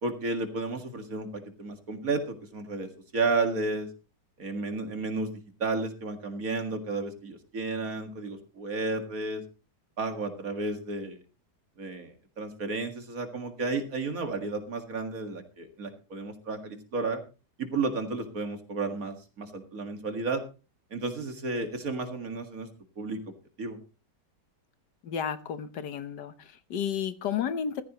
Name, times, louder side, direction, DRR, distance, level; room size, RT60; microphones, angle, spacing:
voice 1, 0.0-3.9 4.4-5.3 5.6-9.4 10.0-11.2 11.8-17.2 17.6-20.4 20.9-22.7 23.0-23.2 23.6-23.8, right 3 dB, 55° right, 2.3 m, -32 dB
voice 2, 25.0-27.8, left 8 dB, 75° left, 1.6 m, -32 dB
15.0 x 14.0 x 3.0 m
omnidirectional pair, 1.9 m